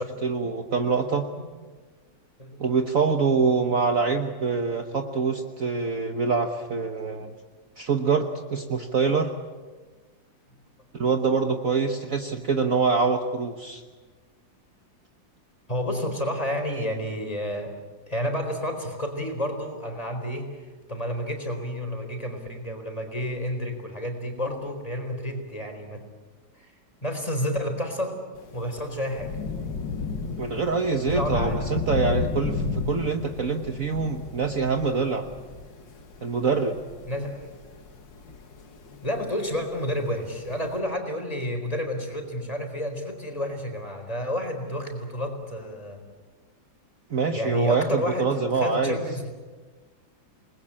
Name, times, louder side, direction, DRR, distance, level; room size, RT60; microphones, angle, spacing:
voice 1, 0.2-1.3 2.6-7.3 7.8-9.3 10.9-13.8 30.4-35.2 36.2-36.8 47.1-49.0, right 5 dB, 50° right, 5 dB, 1.5 m, -25 dB
voice 2, 15.7-17.7 18.1-26.0 26.5-26.7 27.0-28.2 28.5-29.3 31.1-31.8 37.1-37.5 39.0-46.0 47.3-49.3, equal, 20° left, 4 dB, 4.3 m, -30 dB
Thunder / Rain, 28.4-40.8, left 4 dB, 70° left, 2.5 m, -33 dB
28.5 x 20.5 x 8.7 m, 1.4 s
omnidirectional pair, 2.1 m